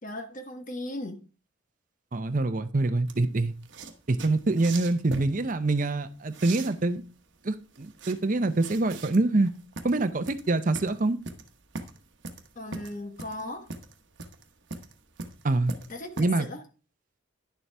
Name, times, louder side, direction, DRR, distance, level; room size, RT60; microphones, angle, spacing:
voice 1, 0.0-1.2 12.6-13.7 15.9-16.6, left 1 dB, 40° left, 6 dB, 1.1 m, -37 dB
voice 2, 2.1-3.5 4.1-7.0 7.4-9.5 9.8-11.2 15.4-15.7 16.2-16.5, right 2 dB, 40° right, 10 dB, 0.6 m, -25 dB
sound 1, 3.1-16.2, right 3 dB, 60° right, 1.1 m, -42 dB
10.5 x 6.9 x 3.4 m, 0.35 s
head